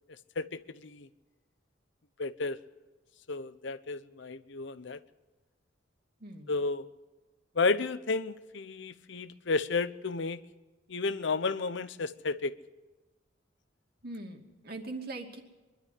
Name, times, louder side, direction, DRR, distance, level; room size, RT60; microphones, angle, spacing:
voice 1, 0.4-1.1 2.2-2.6 3.3-5.0 6.5-6.9 7.6-10.4 10.9-12.5, left 3 dB, 65° left, 13 dB, 0.9 m, -32 dB
voice 2, 6.2-6.5 14.0-15.4, right 2 dB, 55° right, 3 dB, 2.6 m, -41 dB
24.0 x 12.0 x 9.6 m, 1.2 s
head